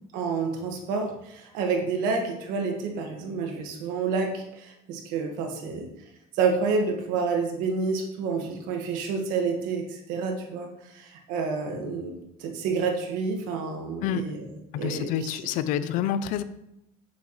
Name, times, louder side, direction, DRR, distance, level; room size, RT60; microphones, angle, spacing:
voice 1, 0.1-5.9 6.3-12.1 12.4-14.4 14.8-15.3, right 4 dB, 80° right, 2 dB, 1.7 m, -29 dB
voice 2, 14.7-16.4, left 9 dB, 70° left, 14 dB, 0.6 m, -28 dB
8.5 x 7.1 x 3.2 m, 0.83 s
cardioid pair, 110°, 14 cm